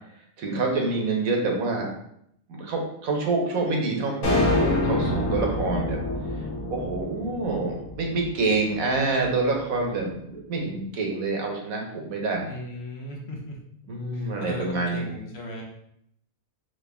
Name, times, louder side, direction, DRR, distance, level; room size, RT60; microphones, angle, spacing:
voice 1, 0.4-1.9 2.5-6.0 6.7-12.4 13.9-15.1, right 3 dB, 85° right, 0 dB, 1.4 m, -27 dB
sound 1, 4.2-8.6, left 2 dB, 75° left, 1.3 m, -26 dB
voice 2, 12.5-13.6 14.1-15.6, left 1 dB, 55° left, -1 dB, 1.0 m, -37 dB
3.9 x 3.0 x 3.4 m, 0.73 s
omnidirectional pair, 1.4 m